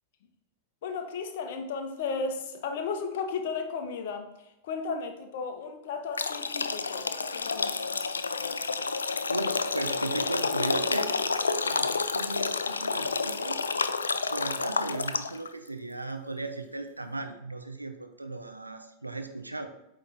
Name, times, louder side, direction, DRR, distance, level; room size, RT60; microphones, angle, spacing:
voice 1, 0.8-8.2, left 5 dB, 55° left, 6 dB, 0.9 m, -35 dB
sound 1, 6.1-15.5, left 4 dB, 75° left, 0.4 m, -29 dB
voice 2, 8.0-8.4 9.3-11.1 11.6-13.6 14.3-19.7, right 2 dB, 85° right, 7 dB, 0.6 m, -36 dB
8.7 x 3.2 x 4.2 m, 0.86 s
figure-of-eight pair, 90°, 0 cm